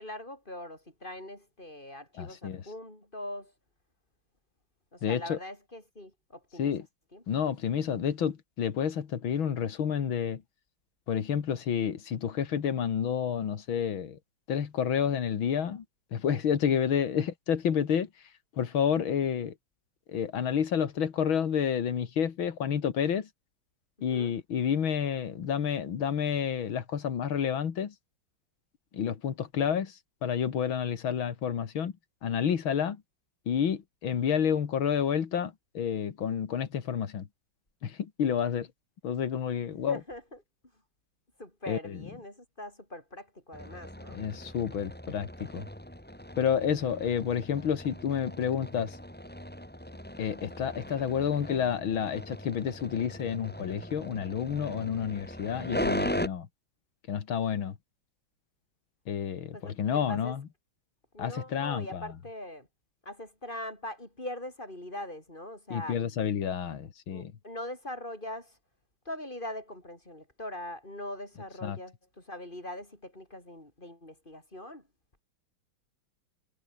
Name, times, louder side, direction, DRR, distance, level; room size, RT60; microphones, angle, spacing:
voice 1, 0.0-3.5 4.9-6.7 7.1-7.2 24.1-24.3 39.9-40.4 41.4-44.2 59.5-60.4 61.1-62.7 63.0-66.0 67.1-68.6 69.1-74.9, left 1 dB, 25° left, 5.8 m, -42 dB
voice 2, 2.2-2.6 5.0-5.4 6.6-6.8 7.3-10.4 11.1-14.2 14.5-15.8 16.1-18.1 18.6-19.5 20.1-23.3 24.0-27.9 28.9-31.9 32.2-33.0 33.5-37.3 37.8-38.7 39.0-40.0 41.7-42.0 44.1-45.7 46.4-49.0 50.2-56.5 57.1-57.8 59.1-60.4 61.2-62.0 65.7-67.3 71.6-71.8, left 8 dB, 80° left, 2.6 m, -29 dB
sound 1, 43.5-56.3, equal, 5° left, 4.0 m, -39 dB
omnidirectional pair, 2.2 m